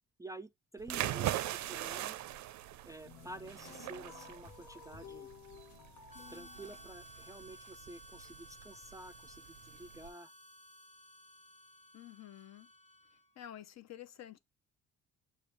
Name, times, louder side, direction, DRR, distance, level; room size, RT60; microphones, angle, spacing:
voice 1, 0.2-2.2 2.8-5.3 6.3-10.3, right 1 dB, 10° right, 0.3 m, -50 dB
sound 1, 0.8-10.1, right 13 dB, 70° right, 0.5 m, -41 dB
sound 2, 3.0-7.6, left 7 dB, 85° left, 1.1 m, -54 dB
Harmonica, 6.1-13.4, right 1 dB, 20° left, 1.3 m, -56 dB
voice 2, 11.9-12.7 13.4-14.4, left 11 dB, 60° left, 0.6 m, -50 dB
6.8 x 2.4 x 3.1 m
cardioid pair, 90°, 30 cm